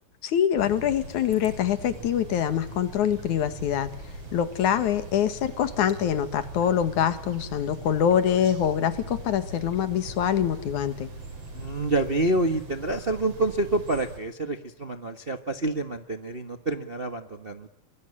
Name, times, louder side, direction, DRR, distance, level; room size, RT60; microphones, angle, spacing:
voice 1, 0.2-3.9 4.3-11.1, left 9 dB, 85° left, 12 dB, 3.1 m, -25 dB
sound 1, 0.6-14.2, right 1 dB, 55° right, 6.7 m, -41 dB
voice 2, 11.5-17.7, right 2 dB, 35° right, 8 dB, 0.9 m, -28 dB
24.0 x 23.5 x 10.0 m, 0.71 s
omnidirectional pair, 3.3 m